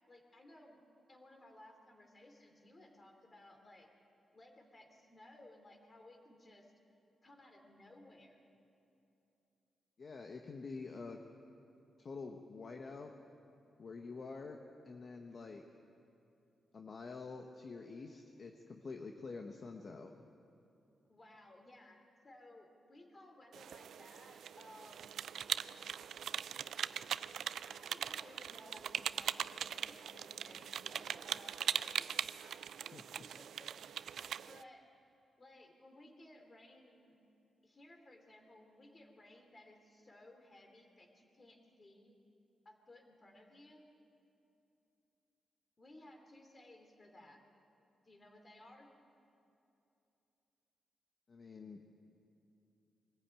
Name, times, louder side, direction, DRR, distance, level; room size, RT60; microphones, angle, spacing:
voice 1, 0.1-0.8 1.1-3.9 4.3-6.7 7.2-8.4 21.1-25.1 26.3-26.4 27.6-32.1 33.0-33.7 34.2-34.8 35.4-37.1 37.6-42.2 42.6-43.8 45.8-47.4 48.0-48.9, left 1 dB, 30° left, 3 dB, 3.1 m, -59 dB
voice 2, 10.0-11.2 12.0-13.1 13.8-14.6 14.8-15.6 16.7-20.1 32.8-33.0 51.3-52.0, left 4 dB, 45° left, 3 dB, 1.2 m, -47 dB
sound 1, 23.5-34.6, right 8 dB, 75° right, 0.4 m, -41 dB
23.0 x 15.0 x 9.1 m, 2.8 s
cardioid pair, 110°, 0 cm